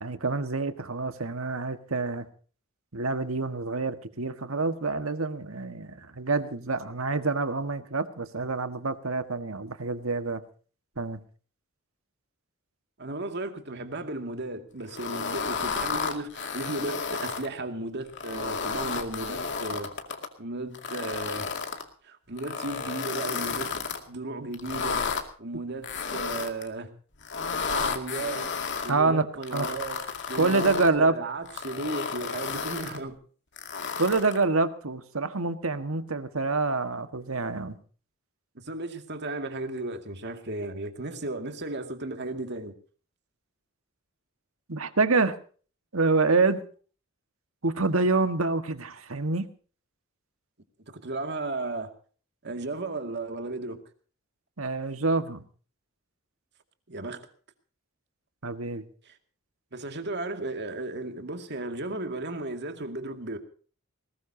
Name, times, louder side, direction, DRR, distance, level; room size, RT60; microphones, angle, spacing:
voice 1, 0.0-2.3 2.9-10.4 11.0-11.2 28.9-29.7 30.3-31.2 34.0-37.8 44.7-45.4 45.9-46.6 47.6-49.5 54.6-55.4 58.4-58.8, right 3 dB, 75° right, 1.6 m, -27 dB
voice 2, 13.0-19.9 20.4-21.5 22.0-23.7 24.1-25.0 25.4-26.9 27.4-28.5 28.8-30.0 30.3-33.2 38.6-42.7 50.9-51.9 52.4-53.8 56.9-57.2 59.1-59.2 59.7-63.4, right 2 dB, 55° right, 2.2 m, -35 dB
sound 1, 14.9-17.5 18.1-20.3 20.7-21.8 22.4-24.0 24.5-25.2 25.8-26.7 27.2-28.9 29.4-30.9 31.4-33.0 33.6-34.4, left 5 dB, 60° left, 2.3 m, -32 dB
20.5 x 18.5 x 2.8 m
head